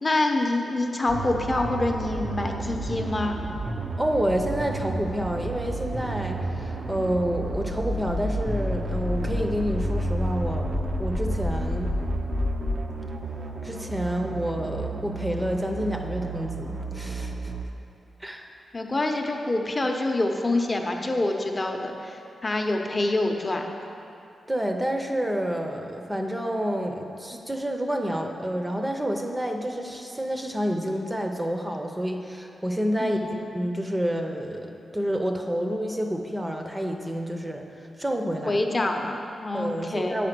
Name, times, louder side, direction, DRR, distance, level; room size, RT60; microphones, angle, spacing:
voice 1, 0.0-3.4 18.7-23.7 33.0-33.4 38.5-40.2, left 2 dB, 30° left, 3 dB, 0.8 m, -26 dB
sound 1, 1.1-17.6, right 3 dB, 50° right, 0.6 m, -32 dB
voice 2, 3.9-11.9 13.6-17.5 18.2-18.5 24.5-38.6 39.5-40.3, equal, 15° right, 3 dB, 0.7 m, -29 dB
sound 2, 7.5-12.8, left 2 dB, 60° left, 0.7 m, -30 dB
8.5 x 5.0 x 6.0 m, 2.8 s
cardioid pair, 85°, 0 cm